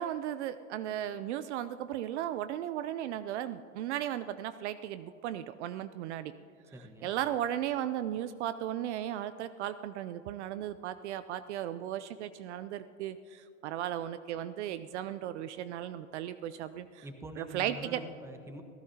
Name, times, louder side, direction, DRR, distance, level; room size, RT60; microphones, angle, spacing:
voice 1, 0.0-6.3 7.0-17.0 17.4-18.0, right 11 dB, 60° right, 13 dB, 0.6 m, -36 dB
voice 2, 6.7-7.1 17.0-18.6, right 1 dB, 5° right, 5 dB, 1.3 m, -45 dB
28.0 x 15.0 x 2.8 m, 2.6 s
hypercardioid pair, 125°, 40 cm